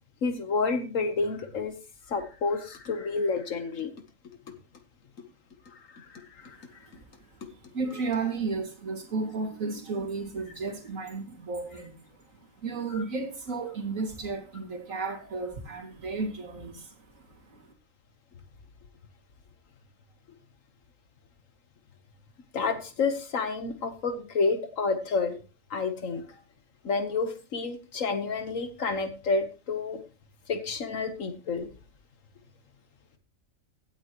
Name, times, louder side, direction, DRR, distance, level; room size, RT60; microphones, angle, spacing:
voice 1, 0.2-1.7 2.1-3.9 5.7-6.7 12.9-13.0 22.5-25.4 25.7-26.2 26.8-30.0 30.5-31.7, left 4 dB, 75° left, 1.5 m, -29 dB
voice 2, 7.7-11.9 12.6-16.9 17.5-17.7, right 4 dB, 80° right, 2.6 m, -33 dB
16.5 x 8.7 x 3.0 m
omnidirectional pair, 1.4 m